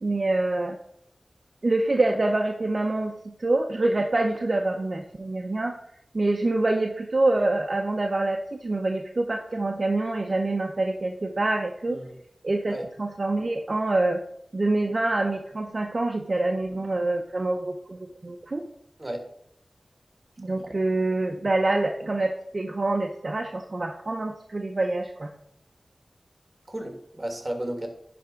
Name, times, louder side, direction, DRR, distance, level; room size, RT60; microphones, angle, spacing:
voice 1, 0.0-0.8 1.6-5.8 6.1-12.0 12.4-14.2 14.5-18.6 20.4-25.3, right 2 dB, 55° right, 3 dB, 0.6 m, -26 dB
voice 2, 11.9-12.2 12.7-12.9 19.0-19.2 20.6-20.7 26.7-27.9, right 1 dB, 25° right, 4 dB, 1.6 m, -33 dB
10.5 x 3.4 x 5.1 m, 0.74 s
wide cardioid pair, 60°, 0 cm